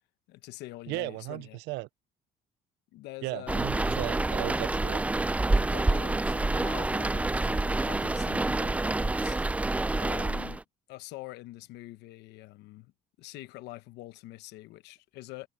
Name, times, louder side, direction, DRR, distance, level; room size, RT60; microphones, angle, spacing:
voice 1, 0.3-1.6 2.9-3.8 5.6-9.5 10.0-10.6 10.9-12.9 13.2-15.5, left 17 dB, 85° left, 1.0 m, -45 dB
voice 2, 0.9-1.9 3.2-5.0, right 21 dB, 90° right, 0.5 m, -36 dB
sound 1, 3.5-10.6, right 2 dB, 10° right, 0.4 m, -28 dB
cardioid pair, 110°, 17 cm